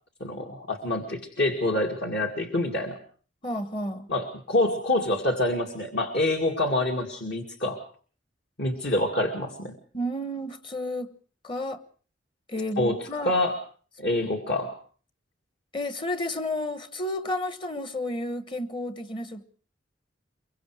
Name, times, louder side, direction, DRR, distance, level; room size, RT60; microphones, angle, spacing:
voice 1, 0.2-3.0 4.1-7.8 8.6-9.7 12.8-13.6 14.0-14.7, left 1 dB, 60° left, 2.3 m, -26 dB
voice 2, 3.4-4.1 9.9-11.1 11.4-11.8 12.5-13.3 15.7-19.4, left 1 dB, 25° left, 1.2 m, -31 dB
23.5 x 23.5 x 4.9 m
head